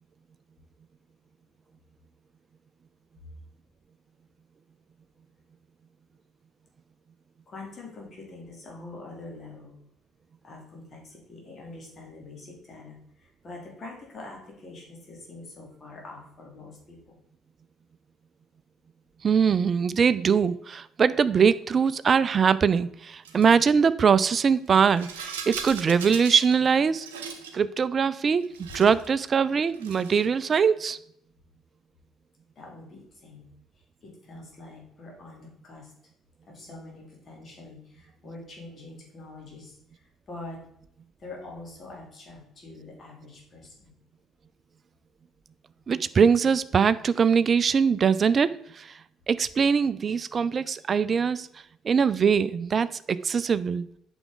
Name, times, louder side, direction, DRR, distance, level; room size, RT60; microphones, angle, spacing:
voice 1, 7.5-9.8 10.4-17.2 32.5-33.5 34.0-35.9 36.4-40.6 41.2-43.9, left 2 dB, 40° left, 3.3 m, -44 dB
voice 2, 19.2-27.1 27.5-31.0 45.9-48.9 49.3-51.5 51.8-53.9, right 6 dB, 40° right, 0.4 m, -22 dB
Rattle, 23.2-23.6 24.7-26.6 26.9-27.6 28.4-29.1 29.7-30.3, right 6 dB, 75° right, 0.8 m, -39 dB
8.8 x 6.2 x 4.0 m
figure-of-eight pair, 50°, 0 cm